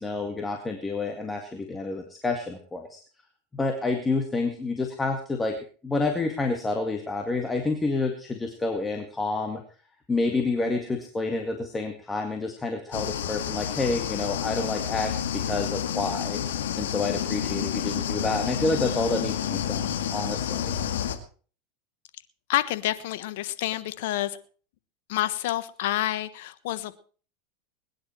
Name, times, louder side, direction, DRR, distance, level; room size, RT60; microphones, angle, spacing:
voice 1, 0.0-3.0 3.5-5.6 5.8-9.6 10.1-16.4 16.8-20.7, left 3 dB, 15° left, 4 dB, 2.1 m, -29 dB
sound 1, 12.9-21.2, left 9 dB, 90° left, 2.1 m, -29 dB
voice 2, 22.5-24.4 25.1-27.0, left 14 dB, 70° left, 14 dB, 1.3 m, -28 dB
21.0 x 10.5 x 4.5 m, 0.41 s
supercardioid pair, 130°, 0 cm